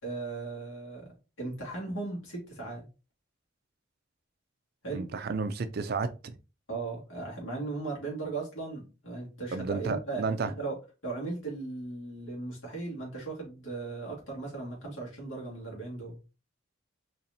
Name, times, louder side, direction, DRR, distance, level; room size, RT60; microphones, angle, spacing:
voice 1, 0.0-2.9 4.8-5.1 6.7-10.8 11.0-16.4, right 3 dB, 80° left, 2.0 m, -37 dB
voice 2, 4.9-6.3 9.5-10.5, right 4 dB, 50° right, 0.4 m, -32 dB
4.1 x 3.0 x 2.7 m
head